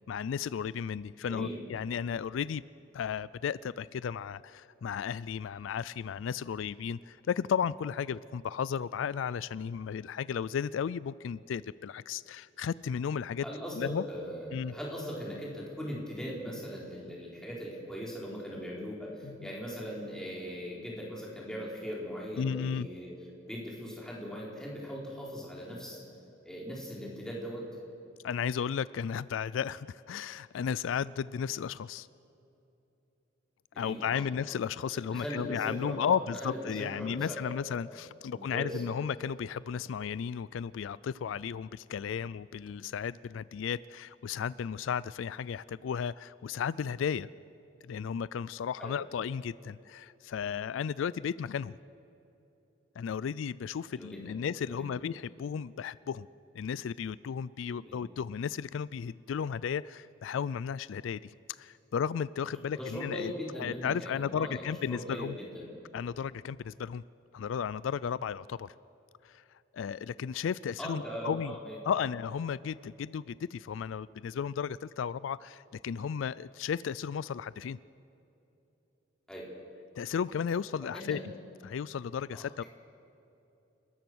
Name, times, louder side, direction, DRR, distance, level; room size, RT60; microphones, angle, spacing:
voice 1, 0.1-2.6 2.9-13.5 13.8-14.0 14.5-14.7 19.2-19.3 22.4-22.9 28.2-32.1 33.8-47.3 47.8-51.8 53.0-56.3 56.5-63.3 63.6-65.3 65.9-67.0 67.3-68.7 69.2-69.4 69.7-71.5 71.8-77.8 80.0-81.2 81.6-82.6, left 7 dB, 75° left, 19 dB, 0.3 m, -34 dB
voice 2, 1.2-1.6 13.4-23.1 23.4-26.0 26.4-27.6 33.7-34.3 34.9-37.6 37.9-38.0 38.3-38.8 48.8-48.9 53.9-55.0 57.7-58.0 62.7-65.9 70.8-72.0 79.3-79.5 80.8-81.2 82.3-82.7, equal, 5° left, -4 dB, 4.1 m, -40 dB
29.5 x 14.0 x 6.3 m, 3.0 s
head